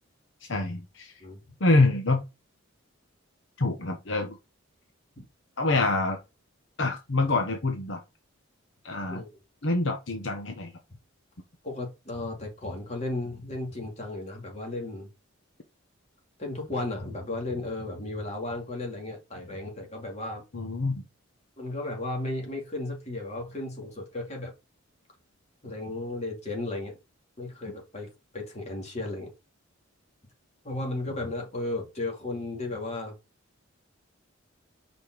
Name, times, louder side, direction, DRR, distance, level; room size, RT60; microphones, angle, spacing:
voice 1, 0.5-1.1 1.6-2.2 3.6-4.4 5.6-6.2 6.8-8.0 8.8-9.2 9.6-10.7 20.5-21.0, left 2 dB, 60° left, 4 dB, 1.0 m, -26 dB
voice 2, 11.6-15.1 16.4-20.4 21.6-24.5 25.6-27.0 27.4-29.3 30.6-33.1, left 2 dB, 30° left, 0 dB, 2.4 m, -34 dB
5.2 x 4.3 x 6.0 m, 0.26 s
head